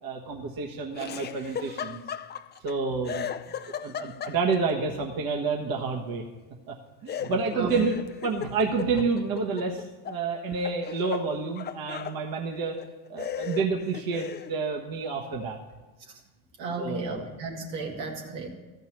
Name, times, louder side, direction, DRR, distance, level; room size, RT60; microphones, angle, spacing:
voice 1, 0.0-2.0 2.6-3.3 3.8-6.2 6.7-6.8 7.0-12.8 13.1-15.6 16.8-17.2, right 4 dB, 45° right, 1 dB, 1.5 m, -29 dB
Laughter, 0.9-2.7 3.0-4.7 7.1-10.2 10.5-12.2 12.8-12.9 13.2-14.5, left 8 dB, 20° left, 0.5 m, -36 dB
voice 2, 7.2-7.8 16.6-18.5, right 3 dB, 75° right, 0 dB, 2.5 m, -34 dB
13.5 x 5.4 x 9.0 m, 1.2 s
hypercardioid pair, 85°, 48 cm